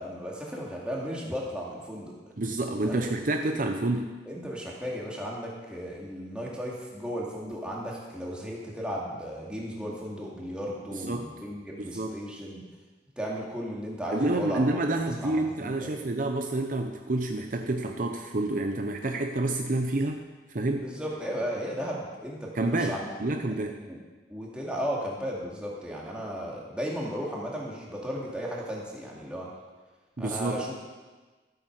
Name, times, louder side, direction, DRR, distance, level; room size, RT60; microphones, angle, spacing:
voice 1, 0.0-2.2 2.8-3.0 4.2-12.6 13.2-14.6 15.0-16.0 20.8-23.1 23.8-24.0 24.3-29.5 30.2-30.8, equal, 5° right, -4 dB, 2.5 m, -35 dB
voice 2, 2.4-4.1 11.0-11.3 11.8-12.1 14.1-20.2 20.5-20.9 22.5-23.8 30.2-30.6, right 2 dB, 50° right, 4 dB, 0.7 m, -28 dB
13.5 x 8.4 x 6.5 m, 1.3 s
head